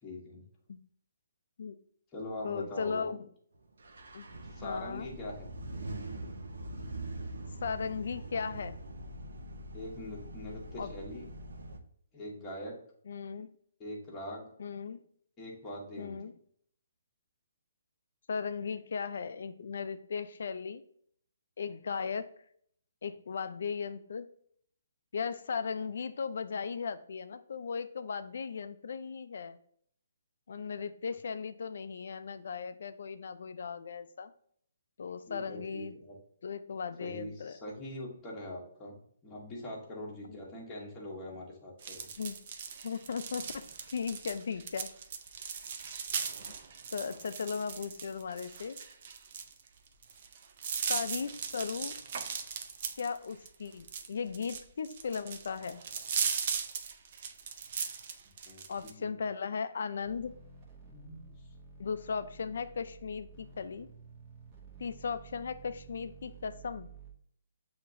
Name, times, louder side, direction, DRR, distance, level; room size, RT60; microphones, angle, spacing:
voice 1, 0.0-0.4 2.1-3.2 4.5-5.5 9.7-11.3 12.1-12.8 13.8-14.5 15.4-16.2 35.3-36.2 37.0-42.1 58.5-59.2 60.9-61.3, left 1 dB, 15° left, -4 dB, 1.0 m, -43 dB
voice 2, 2.4-3.2 4.1-4.3 4.6-5.1 7.6-8.8 10.8-10.9 13.1-13.5 14.6-15.0 16.0-16.3 18.3-20.8 21.6-22.3 23.0-24.3 25.1-29.6 30.5-34.3 35.0-36.0 36.4-37.6 40.3-40.4 42.2-42.4 42.8-44.9 46.9-48.8 50.9-51.9 53.0-55.8 58.7-60.3 61.8-63.9 64.8-66.9, left 5 dB, 65° left, 11 dB, 0.4 m, -37 dB
sound 1, 3.8-11.8, right 1 dB, 85° right, 0.8 m, -43 dB
sound 2, 41.8-58.9, right 6 dB, 40° right, 0.4 m, -38 dB
sound 3, 60.0-67.1, right 5 dB, 20° right, 0.9 m, -52 dB
7.3 x 2.9 x 2.6 m, 0.63 s
hypercardioid pair, 165°, 0 cm